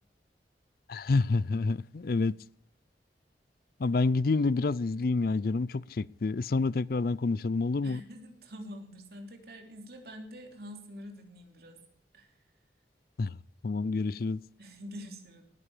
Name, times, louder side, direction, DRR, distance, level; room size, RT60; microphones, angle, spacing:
voice 1, 0.9-2.3 3.8-8.0 13.2-13.4 13.6-14.4, left 3 dB, 55° left, 0.4 m, -28 dB
voice 2, 7.8-11.8 12.1-12.3 14.6-15.4, equal, 60° right, 3.3 m, -46 dB
19.0 x 9.8 x 5.0 m
head